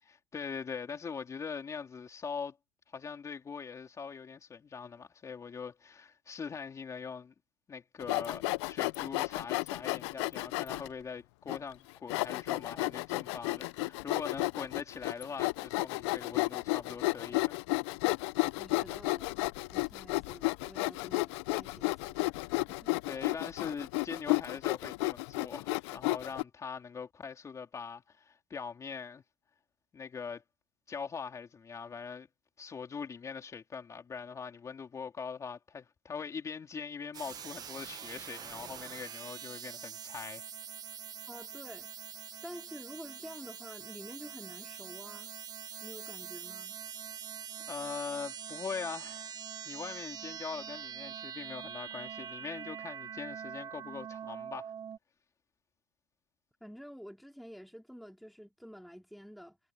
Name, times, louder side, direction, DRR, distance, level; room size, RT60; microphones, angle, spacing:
voice 1, 0.1-2.6 2.9-7.3 7.7-17.6 23.1-29.2 29.9-30.4 30.9-32.3 32.6-40.4 47.7-49.4 49.7-54.7, left 6 dB, 20° left, 3.7 m, -42 dB
Sawing, 8.0-10.9 11.5-11.6 12.1-26.4, left 23 dB, 75° left, 0.6 m, -32 dB
voice 2, 18.6-19.4 19.7-23.0 41.3-41.9 42.4-45.3 45.8-46.8 56.6-59.6, equal, ahead, 2.8 m, -49 dB
sound 1, 37.1-55.0, right 8 dB, 25° right, 1.2 m, -44 dB
cardioid pair, 145°, 14 cm